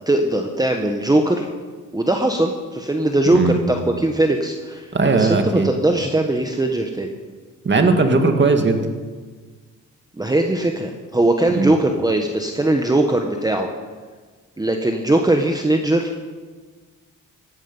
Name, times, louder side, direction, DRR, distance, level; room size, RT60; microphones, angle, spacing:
voice 1, 0.1-1.5 1.9-4.9 5.1-7.1 10.2-13.7 14.6-16.1, right 1 dB, 10° right, 4 dB, 1.2 m, -20 dB
voice 2, 4.9-5.7 7.6-8.8 11.5-11.7, right 3 dB, 35° right, 5 dB, 2.1 m, -17 dB
17.0 x 13.5 x 5.5 m, 1.4 s
cardioid pair, 100°, 33 cm